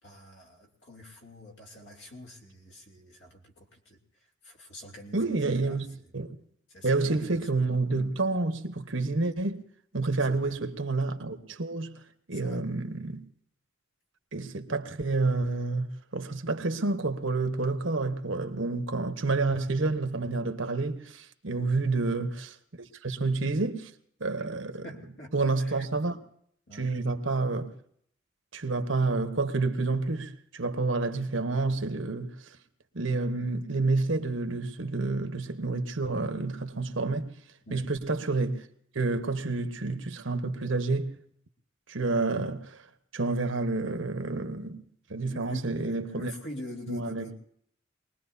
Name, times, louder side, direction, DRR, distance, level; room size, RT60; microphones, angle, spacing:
voice 1, 0.0-4.0 4.4-6.1 6.7-7.4 10.3-10.5 12.3-12.6 21.5-21.7 24.8-25.3 25.6-25.8 26.7-26.9 37.7-37.9 45.2-47.3, left 1 dB, 65° left, 2.9 m, -46 dB
voice 2, 5.1-6.4 6.8-9.6 9.9-12.0 12.3-13.2 14.3-22.5 23.0-23.9 24.2-24.9 25.3-26.2 26.7-27.7 28.5-32.3 32.9-37.3 37.7-38.6 38.9-41.1 41.9-42.8 43.1-44.8 45.1-46.3 46.9-47.3, right 3 dB, 80° right, 1.2 m, -29 dB
23.0 x 20.0 x 2.8 m
head